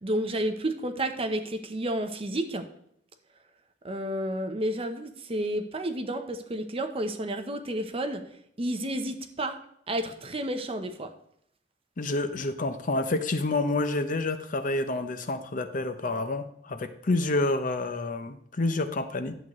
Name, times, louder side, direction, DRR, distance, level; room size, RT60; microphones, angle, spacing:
voice 1, 0.0-2.7 3.8-8.2 8.6-9.6 9.9-11.1, right 1 dB, 30° right, 7 dB, 0.8 m, -31 dB
voice 2, 12.0-19.4, left 2 dB, 45° left, 9 dB, 0.7 m, -28 dB
11.0 x 8.0 x 3.1 m, 0.69 s
head